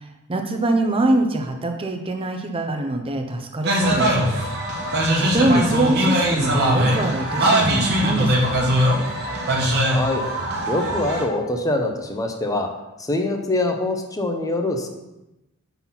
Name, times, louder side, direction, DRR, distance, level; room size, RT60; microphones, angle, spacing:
voice 1, 0.0-4.4 5.2-8.8, right 2 dB, 25° right, 4 dB, 0.6 m, -24 dB
sound 1, 3.6-11.2, equal, 50° right, 1.2 m, -21 dB
voice 2, 9.6-10.2 10.7-12.7 13.0-14.9, left 2 dB, 15° left, 3 dB, 0.7 m, -24 dB
5.7 x 4.1 x 5.7 m, 0.98 s
head